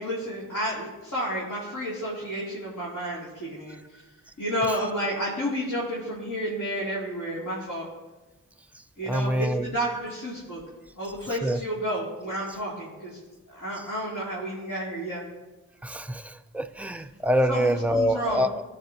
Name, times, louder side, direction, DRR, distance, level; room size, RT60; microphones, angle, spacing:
voice 1, 0.0-3.8 4.4-7.9 9.0-10.6 10.9-13.2 13.5-15.2 17.5-18.4, equal, 55° left, -7 dB, 2.7 m, -31 dB
voice 2, 9.0-9.7 11.4-11.6 15.8-18.6, equal, 5° right, 8 dB, 0.5 m, -25 dB
14.5 x 5.8 x 2.7 m, 1.1 s
cardioid pair, 40°, 35 cm